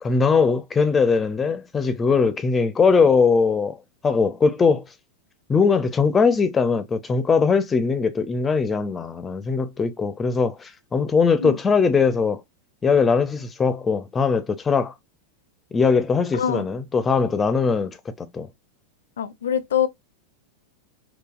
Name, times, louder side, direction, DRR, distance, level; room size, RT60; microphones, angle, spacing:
voice 1, 0.0-3.8 4.0-4.9 5.5-12.4 12.8-14.9 15.7-18.5, left 5 dB, 20° left, 0.4 m, -20 dB
voice 2, 16.3-16.7 19.2-19.9, left 9 dB, 75° left, 0.4 m, -24 dB
3.9 x 2.3 x 2.3 m
hypercardioid pair, 95°, 0 cm